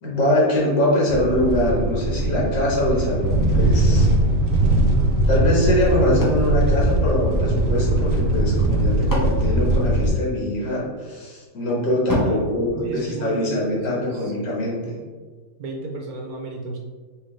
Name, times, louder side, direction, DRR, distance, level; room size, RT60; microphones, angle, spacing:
voice 1, 0.0-4.1 5.3-15.0, left 1 dB, 75° left, -5 dB, 1.9 m, -23 dB
sound 1, 1.1-10.1, right 1 dB, 85° right, 0.5 m, -20 dB
sound 2, 6.2-7.7 8.6-10.6 12.1-13.7, left 1 dB, 20° left, 0.5 m, -31 dB
voice 2, 12.7-14.3 15.6-16.8, right 2 dB, 65° right, 0 dB, 1.0 m, -33 dB
5.8 x 2.9 x 3.2 m, 1.5 s
omnidirectional pair, 1.8 m